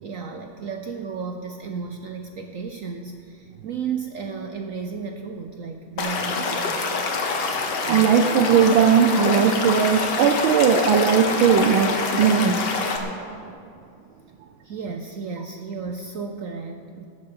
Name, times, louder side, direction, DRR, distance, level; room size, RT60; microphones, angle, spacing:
voice 1, 0.0-6.8 14.6-17.1, right 5 dB, 65° right, 4 dB, 0.8 m, -33 dB
Stream / Liquid, 6.0-13.0, left 4 dB, 60° left, 1.8 m, -25 dB
voice 2, 7.8-12.6, right 7 dB, 80° right, 6 dB, 1.5 m, -18 dB
17.5 x 7.6 x 7.0 m, 2.5 s
omnidirectional pair, 2.2 m